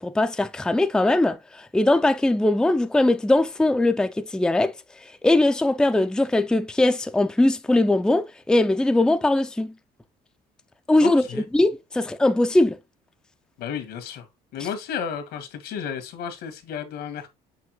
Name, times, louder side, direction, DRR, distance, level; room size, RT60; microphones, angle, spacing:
voice 1, 0.0-4.7 5.2-9.7 10.9-11.2 11.5-12.8, left 2 dB, 5° left, 0.4 m, -20 dB
voice 2, 11.0-11.4 13.6-14.2 14.5-17.3, left 7 dB, 80° left, 1.7 m, -32 dB
5.9 x 5.6 x 3.0 m
cardioid pair, 110°, 17 cm